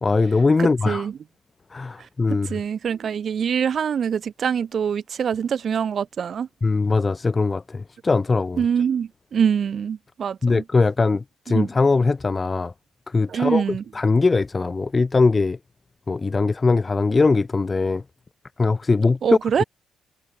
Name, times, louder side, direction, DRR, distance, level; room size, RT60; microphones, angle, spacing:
voice 1, 0.0-1.0 1.7-2.6 6.6-8.6 10.4-12.7 13.1-15.6 16.1-18.0 18.6-19.2, left 3 dB, 30° left, 0.4 m, -21 dB
voice 2, 0.6-1.1 2.3-6.5 8.6-10.6 11.5-11.7 13.3-13.8 19.2-19.6, right 7 dB, 50° right, 0.6 m, -24 dB
figure-of-eight pair, 45°, 0 cm